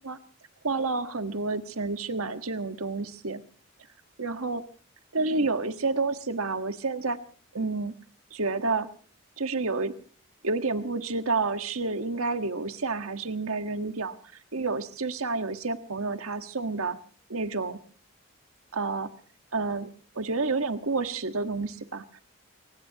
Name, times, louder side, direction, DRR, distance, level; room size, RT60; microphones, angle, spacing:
voice 1, 0.6-3.4 4.2-4.6 5.1-7.2 7.5-7.9 8.3-8.9 9.4-9.9 10.4-14.2 14.5-17.0 17.3-17.8 18.7-19.1 19.5-19.9 20.1-22.2, right 3 dB, 80° right, 9 dB, 1.5 m, -29 dB
29.5 x 16.5 x 2.9 m, 0.42 s
head